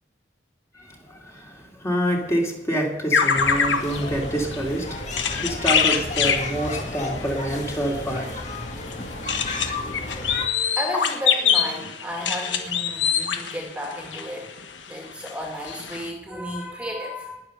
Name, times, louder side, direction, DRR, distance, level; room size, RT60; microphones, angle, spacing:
voice 1, 0.7-8.5, right 1 dB, 15° left, -1 dB, 2.6 m, -27 dB
sound 1, 3.1-14.8 15.3-15.4 15.6-16.1, left 7 dB, 80° left, 1.3 m, -25 dB
sound 2, 3.3-10.5, left 2 dB, 40° left, 1.9 m, -33 dB
voice 2, 10.8-14.5 14.9-17.4, equal, 5° right, 0 dB, 2.1 m, -33 dB
20.0 x 7.2 x 6.6 m, 0.98 s
head